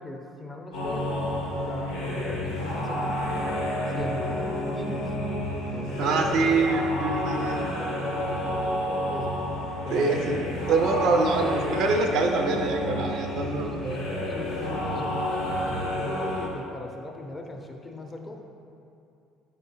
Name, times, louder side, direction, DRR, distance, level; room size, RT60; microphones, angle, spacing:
voice 1, 0.0-3.2 3.9-5.1 5.7-6.5 7.5-9.4 9.8-10.4 13.3-18.5, left 2 dB, 30° left, 2 dB, 0.5 m, -39 dB
sound 1, 0.7-16.5, left 1 dB, 80° left, 0.7 m, -30 dB
voice 2, 6.0-7.7 9.9-10.4 10.7-14.0, right 3 dB, 65° right, 4 dB, 0.4 m, -25 dB
5.1 x 3.6 x 2.9 m, 2.6 s
hypercardioid pair, 55°, 0 cm